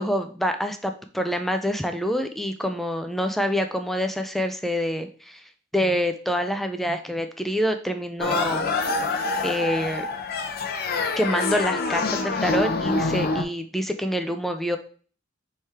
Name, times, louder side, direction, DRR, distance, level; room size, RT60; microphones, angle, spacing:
voice 1, 0.0-5.4 5.7-8.7 9.4-10.0 11.2-14.8, equal, ahead, 7 dB, 0.4 m, -26 dB
sound 1, 8.2-13.4, left 3 dB, 55° left, 0.6 m, -26 dB
3.5 x 3.2 x 4.2 m, 0.41 s
head